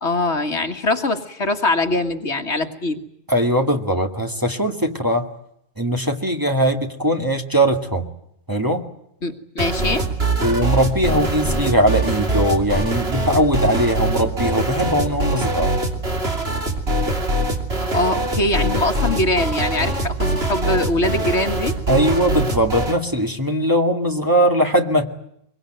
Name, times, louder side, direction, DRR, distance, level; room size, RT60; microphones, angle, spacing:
voice 1, 0.0-3.0 9.2-10.1 17.9-21.8, left 2 dB, 60° left, 7 dB, 2.1 m, -22 dB
voice 2, 3.3-5.3 5.8-8.1 8.5-8.8 10.4-15.7 21.9-25.1, equal, 15° right, 3 dB, 2.1 m, -20 dB
sound 1, 9.6-23.0, right 2 dB, 50° right, 3.3 m, -23 dB
24.0 x 23.5 x 9.1 m, 0.74 s
omnidirectional pair, 1.3 m